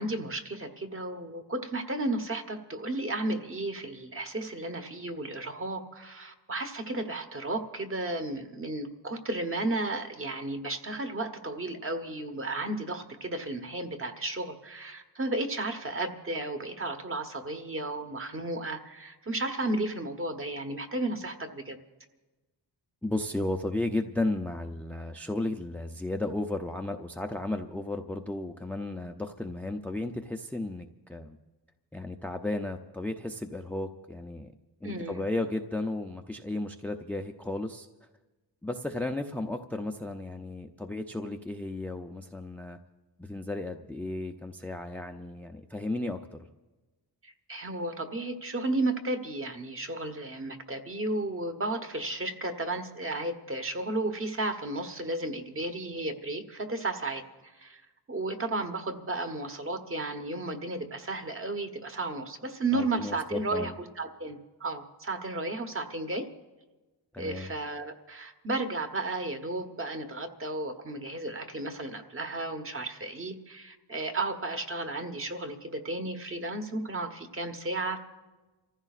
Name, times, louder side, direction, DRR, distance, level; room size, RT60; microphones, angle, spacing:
voice 1, 0.0-21.8 34.8-35.2 47.2-57.8 58.1-66.3 67.2-78.0, right 2 dB, 30° right, 6 dB, 1.1 m, -33 dB
voice 2, 23.0-31.4 31.9-34.5 34.8-37.9 38.6-42.8 43.2-46.4 62.7-63.7 67.1-67.5, left 2 dB, 5° left, 5 dB, 0.4 m, -34 dB
30.0 x 15.0 x 2.4 m, 1.2 s
wide cardioid pair, 140°, 45 cm